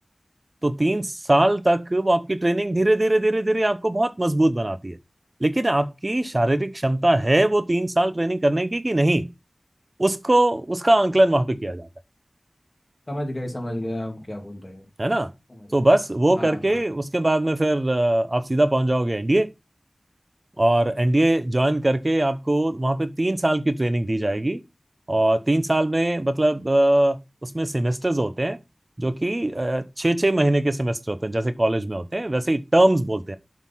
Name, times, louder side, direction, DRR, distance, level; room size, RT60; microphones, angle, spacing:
voice 1, 0.6-5.0 5.4-9.3 10.0-11.9 15.0-15.3 15.7-19.5 20.6-24.6 25.1-28.6 29.0-33.4, right 1 dB, 35° right, 0.7 m, -21 dB
voice 2, 13.1-14.9 15.5-15.7 16.3-16.8, left 1 dB, 35° left, 2.8 m, -32 dB
7.4 x 4.0 x 5.5 m
wide cardioid pair, 50°, 0 cm